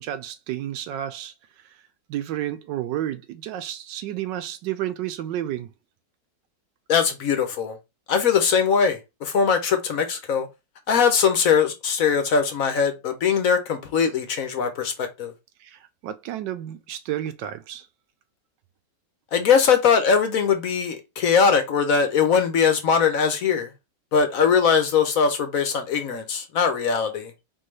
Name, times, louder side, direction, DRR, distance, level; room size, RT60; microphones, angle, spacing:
voice 1, 0.0-1.3 1.6-1.8 2.1-5.7 15.6-17.9, right 12 dB, 85° right, 1.3 m, -31 dB
voice 2, 6.9-7.8 8.1-10.5 10.9-15.3 19.3-23.7 24.1-27.3, left 6 dB, 60° left, 1.1 m, -21 dB
4.5 x 3.6 x 3.2 m
omnidirectional pair, 1.9 m